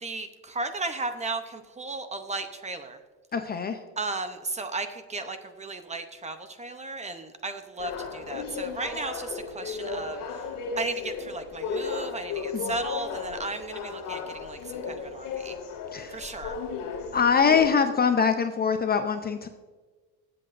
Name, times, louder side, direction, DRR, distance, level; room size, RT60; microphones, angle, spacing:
voice 1, 0.0-3.0 4.0-10.2 10.8-15.5 16.1-16.5, right 3 dB, 15° right, 8 dB, 0.7 m, -35 dB
voice 2, 3.3-3.8 12.5-12.7 15.9-16.2 17.1-19.5, left 6 dB, 25° left, 7 dB, 0.5 m, -23 dB
sound 1, 7.8-17.7, left 5 dB, 55° left, 2.0 m, -35 dB
21.0 x 7.8 x 2.5 m, 1.4 s
cardioid pair, 130°, 40 cm